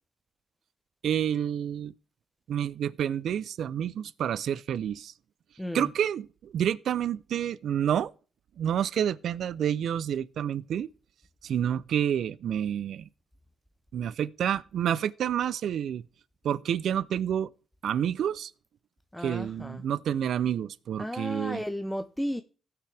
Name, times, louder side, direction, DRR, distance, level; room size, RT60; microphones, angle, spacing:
voice 1, 1.0-1.9 2.5-5.1 5.7-8.1 8.6-10.9 11.4-13.0 13.9-16.0 16.4-17.5 17.8-18.5 19.2-21.6, right 9 dB, 70° right, 0.4 m, -29 dB
voice 2, 5.6-5.9 19.1-19.8 21.0-22.4, equal, 5° left, 0.6 m, -34 dB
17.0 x 5.8 x 3.3 m
cardioid pair, 80°, 0 cm